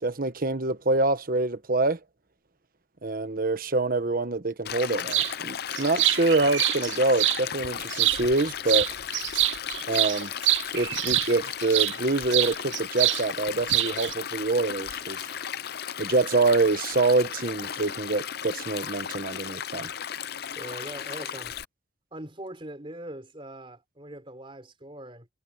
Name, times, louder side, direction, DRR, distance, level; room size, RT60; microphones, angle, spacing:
voice 1, 0.0-2.0 3.0-8.9 9.9-10.3 10.7-15.3 16.0-19.9, right 2 dB, 50° right, 1.2 m, -25 dB
Stream, 4.6-21.6, left 8 dB, 60° left, 0.7 m, -35 dB
sound 1, 5.1-5.3 5.7-7.4 7.9-8.4 8.7-11.9 12.3-13.2 13.5-14.1, right 16 dB, 85° right, 0.5 m, -25 dB
voice 2, 20.5-21.6 22.1-25.3, right 1 dB, 30° right, 4.1 m, -41 dB
head